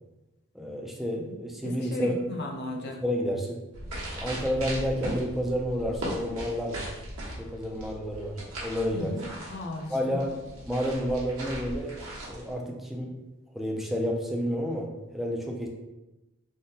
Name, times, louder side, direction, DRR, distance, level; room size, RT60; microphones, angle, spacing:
voice 1, 0.5-2.1 3.0-3.6 4.2-6.8 7.4-9.1 9.9-10.3 10.7-11.9 12.3-13.1 13.5-14.9 15.1-15.7, equal, ahead, -1 dB, 0.3 m, -30 dB
voice 2, 1.6-3.0 8.9-9.2 9.5-10.4, left 2 dB, 50° left, 0 dB, 0.5 m, -35 dB
sound 1, 3.7-12.5, right 1 dB, 80° right, 1.0 m, -38 dB
3.5 x 2.1 x 2.7 m, 0.99 s
head